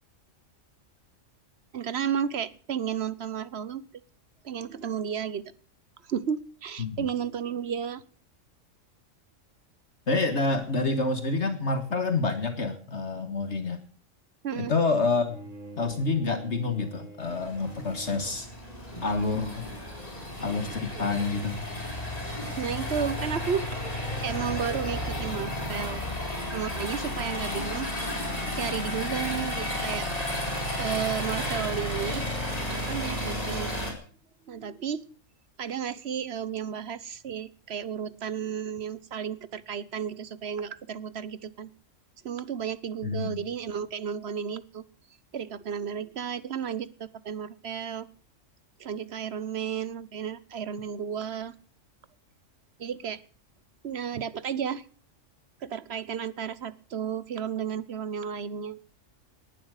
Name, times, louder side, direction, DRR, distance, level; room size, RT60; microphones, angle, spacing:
voice 1, 1.7-3.8 4.4-5.5 6.1-8.0 14.4-14.7 22.6-23.7 24.2-26.0 26.5-27.9 28.5-30.1 30.8-32.3 32.9-33.7 34.5-35.0 35.6-41.7 42.2-44.8 45.3-48.1 48.8-51.5 52.8-53.2 53.8-54.8 55.6-58.8, right 8 dB, 55° right, 17 dB, 1.2 m, -33 dB
voice 2, 6.8-7.1 10.1-13.8 14.6-15.4 15.8-18.5 19.0-19.7 20.4-21.6 43.0-43.4, left 3 dB, 60° left, 8 dB, 2.0 m, -28 dB
Bowed string instrument, 15.2-18.5, right 2 dB, 75° right, 4.6 m, -46 dB
sound 1, 17.2-33.9, left 1 dB, 30° left, 4.7 m, -33 dB
19.0 x 11.5 x 6.5 m, 0.43 s
omnidirectional pair, 1.3 m